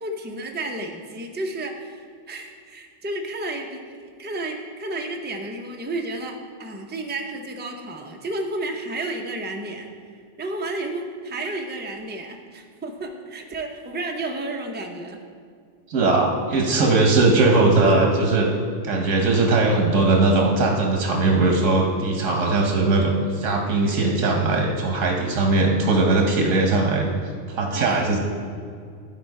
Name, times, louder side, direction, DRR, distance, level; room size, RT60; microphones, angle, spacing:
voice 1, 0.0-9.9 10.4-15.2 27.7-28.0, right 2 dB, 15° right, 2 dB, 0.4 m, -32 dB
voice 2, 15.9-18.5 18.8-27.1 27.5-28.2, right 3 dB, 90° right, 1 dB, 1.3 m, -19 dB
12.0 x 4.2 x 4.7 m, 2.2 s
omnidirectional pair, 1.3 m